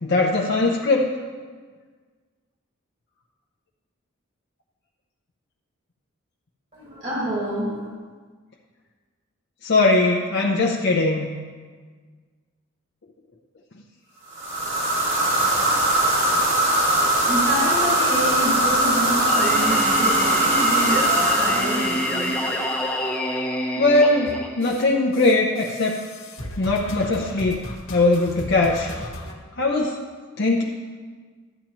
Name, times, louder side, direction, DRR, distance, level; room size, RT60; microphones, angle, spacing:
voice 1, 0.0-1.0 9.6-11.3 23.8-26.0 26.6-27.6 27.9-28.9 29.6-30.0 30.4-30.6, left 2 dB, 50° left, -2 dB, 0.7 m, -20 dB
voice 2, 6.7-7.9 17.1-22.5, equal, 35° right, -4 dB, 1.7 m, -28 dB
sound 1, 14.3-22.9, right 1 dB, 60° right, 2.2 m, -21 dB
Singing, 19.3-25.2, left 1 dB, 5° left, 0.8 m, -28 dB
sound 2, 24.2-24.9 25.1-29.3, left 1 dB, 70° left, 1.5 m, -36 dB
12.5 x 8.9 x 3.0 m, 1.5 s
head